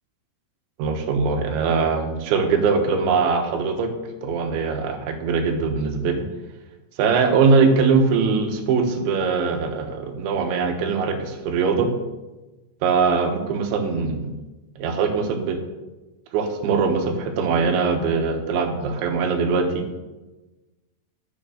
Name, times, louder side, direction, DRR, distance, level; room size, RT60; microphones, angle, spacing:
voice 1, 0.8-3.9 4.2-6.3 7.0-11.9 12.8-14.3 14.8-15.6 16.3-19.9, right 5 dB, 85° right, 4 dB, 3.6 m, -21 dB
10.0 x 6.8 x 6.3 m, 1.1 s
omnidirectional pair, 5.2 m